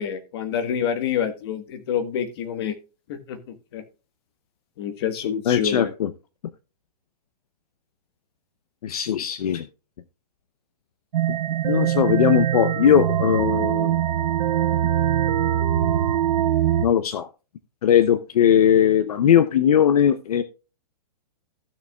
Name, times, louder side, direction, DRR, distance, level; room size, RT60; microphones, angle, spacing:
voice 1, 0.0-2.8 3.1-3.8 4.8-5.9, left 8 dB, 40° left, 1.5 m, -27 dB
voice 2, 5.5-6.1 8.8-9.6 11.6-14.0 16.8-17.3 17.8-20.4, left 9 dB, 65° left, 0.8 m, -19 dB
sound 1, 11.1-16.9, right 11 dB, 70° right, 0.7 m, -22 dB
16.0 x 6.7 x 2.3 m
hypercardioid pair, 175°, 21 cm